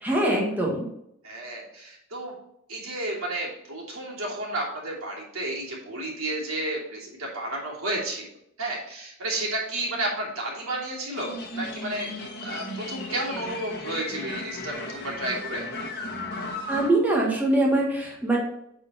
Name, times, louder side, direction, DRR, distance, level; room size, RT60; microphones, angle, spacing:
voice 1, 0.0-0.9 16.7-18.4, right 1 dB, 10° right, -3 dB, 1.7 m, -23 dB
voice 2, 1.2-2.3 2.7-8.3 8.6-12.1 12.4-15.6, right 1 dB, 85° right, -3 dB, 2.9 m, -32 dB
sound 1, 11.1-16.9, left 2 dB, 50° left, 1.5 m, -35 dB
8.6 x 4.4 x 4.3 m, 0.76 s
head